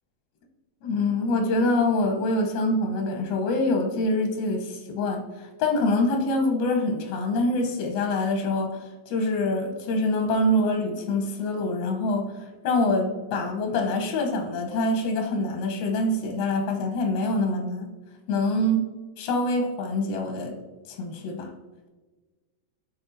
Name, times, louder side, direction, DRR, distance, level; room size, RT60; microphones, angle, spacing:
voice 1, 0.8-17.9 18.3-18.9 19.2-20.6 20.9-21.5, left 2 dB, 90° left, 2 dB, 2.8 m, -25 dB
12.0 x 4.3 x 2.7 m, 1.3 s
omnidirectional pair, 4.0 m